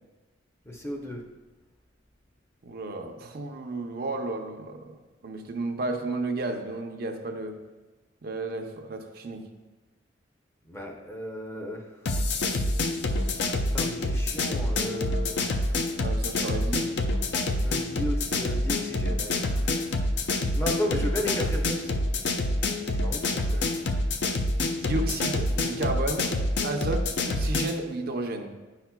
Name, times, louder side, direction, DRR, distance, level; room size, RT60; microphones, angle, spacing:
voice 1, 0.7-1.2 10.6-12.0 13.7-15.5 17.6-19.6 20.5-21.9 22.9-23.5, equal, 15° left, 1 dB, 0.6 m, -34 dB
voice 2, 2.6-5.0 5.2-7.6 8.2-9.5 16.0-16.9 23.5-23.7 24.7-26.3 26.6-28.5, right 2 dB, 50° right, 4 dB, 0.6 m, -32 dB
sound 1, 12.1-27.8, left 2 dB, 65° left, 0.5 m, -27 dB
9.9 x 5.7 x 2.2 m, 1.2 s
head